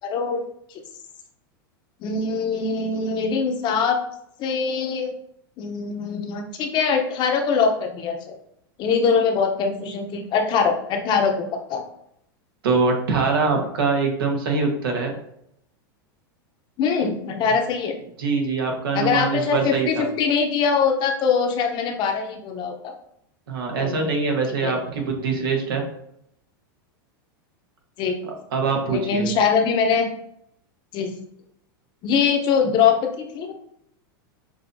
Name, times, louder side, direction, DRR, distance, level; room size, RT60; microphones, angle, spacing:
voice 1, 0.0-0.4 2.0-4.0 4.4-5.1 5.6-8.3 8.8-11.8 16.8-18.0 18.9-22.9 23.8-24.1 24.6-24.8 28.0-28.1 28.9-30.1 30.9-31.1 32.0-33.5, left 5 dB, 40° left, 5 dB, 0.7 m, -22 dB
voice 2, 12.6-15.1 18.2-20.1 23.5-25.8 28.2-29.3, right 4 dB, 80° right, 2 dB, 1.3 m, -23 dB
6.1 x 2.7 x 2.7 m, 0.74 s
hypercardioid pair, 120°, 12 cm